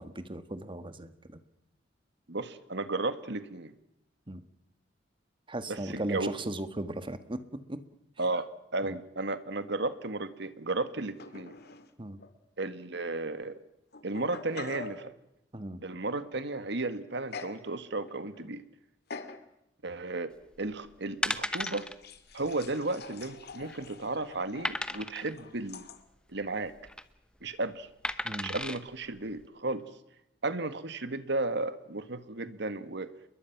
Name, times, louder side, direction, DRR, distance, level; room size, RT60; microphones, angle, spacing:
voice 1, 0.0-1.4 4.3-4.4 5.5-7.8 8.8-8.9 12.0-12.2 15.5-15.8 28.2-28.6, right 1 dB, 25° right, 10 dB, 1.6 m, -37 dB
voice 2, 2.3-3.7 5.7-6.3 8.2-11.6 12.6-13.6 14.0-15.1 15.8-18.6 19.8-20.3 20.6-21.9 22.3-25.8 26.3-26.7 27.4-27.9 28.4-29.9 30.4-33.1, right 2 dB, 65° right, 11 dB, 1.8 m, -34 dB
sound 1, 11.2-11.9 12.2-12.3 13.2-13.3 13.9-15.0 17.3-17.6 18.1-18.5 19.1-19.4 20.0-20.2 21.6-26.0, left 4 dB, 60° left, 2.1 m, -45 dB
sound 2, 20.6-20.7 21.2-21.9 22.3-22.5 22.7-22.8 23.4-23.9 24.6-25.3 26.7-27.0 28.0-28.8 29.4-29.5, left 1 dB, 5° left, 1.1 m, -34 dB
29.5 x 22.0 x 6.0 m, 0.82 s
head